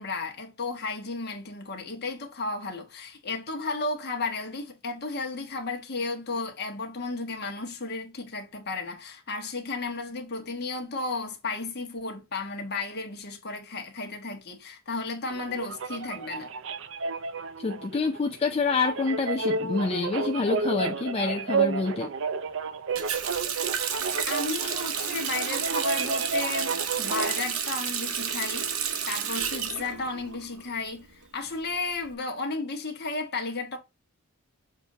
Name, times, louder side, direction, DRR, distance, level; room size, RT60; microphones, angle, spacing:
voice 1, 0.0-16.5 24.3-28.7 29.1-31.1 31.3-33.8, left 3 dB, 50° left, 1.4 m, -33 dB
sound 1, 15.3-27.4, right 4 dB, 60° right, 0.5 m, -31 dB
voice 2, 17.6-22.1, left 4 dB, 25° left, 0.4 m, -27 dB
Water tap faucet, 23.0-30.7 31.0-32.1, right 8 dB, 80° right, 0.9 m, -31 dB
7.2 x 2.7 x 4.9 m
head